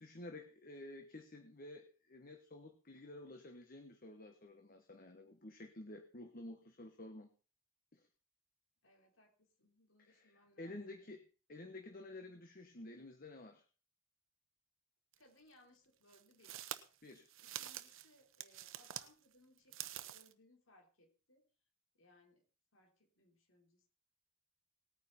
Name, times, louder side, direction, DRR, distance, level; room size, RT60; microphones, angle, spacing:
voice 1, 0.0-7.3 7.9-8.1 10.0-11.2 11.5-13.6 17.0-17.3, left 2 dB, 45° left, 5 dB, 1.3 m, -52 dB
voice 2, 8.8-11.0 15.2-16.6 17.4-21.4 21.9-22.4 22.7-23.9, left 1 dB, 85° left, 2 dB, 4.1 m, -68 dB
sound 1, 15.1-15.2 16.1-19.1 19.6-20.3, right 11 dB, 80° right, 0.9 m, -47 dB
19.0 x 9.4 x 4.2 m, 0.38 s
head